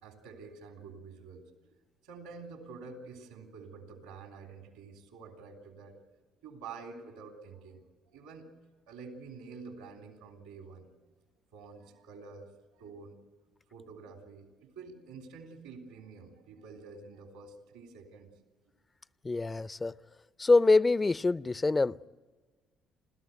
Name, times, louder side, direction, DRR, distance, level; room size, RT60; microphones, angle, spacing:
voice 1, 0.0-1.4 2.0-5.9 6.4-7.8 8.1-8.5 8.9-10.9 11.5-13.2 13.7-18.3, right 4 dB, 80° right, 3.4 m, -48 dB
voice 2, 19.2-19.9 20.4-22.1, left 3 dB, 25° left, 0.6 m, -25 dB
29.5 x 14.0 x 9.3 m
hypercardioid pair, 55°, 0 cm